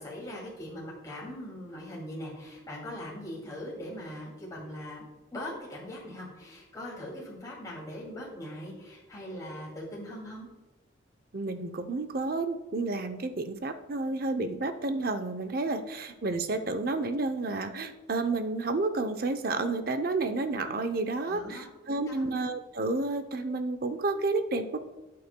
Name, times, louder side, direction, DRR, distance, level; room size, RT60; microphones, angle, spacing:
voice 1, 0.0-5.0 5.3-10.5 21.2-22.3, left 1 dB, 20° left, -4 dB, 2.4 m, -41 dB
voice 2, 11.3-24.8, right 3 dB, 50° right, 9 dB, 0.6 m, -31 dB
12.0 x 8.4 x 2.2 m, 1.1 s
head